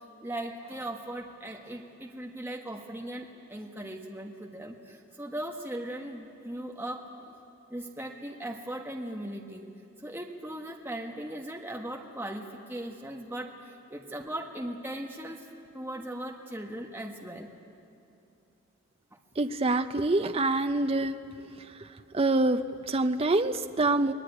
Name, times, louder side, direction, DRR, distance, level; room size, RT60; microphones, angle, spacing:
voice 1, 0.2-7.4 7.7-9.7 10.0-17.5, right 1 dB, 10° right, 0 dB, 1.4 m, -38 dB
voice 2, 19.4-21.1 22.1-24.1, right 2 dB, 25° right, 8 dB, 0.5 m, -26 dB
26.0 x 20.0 x 9.9 m, 2.7 s
head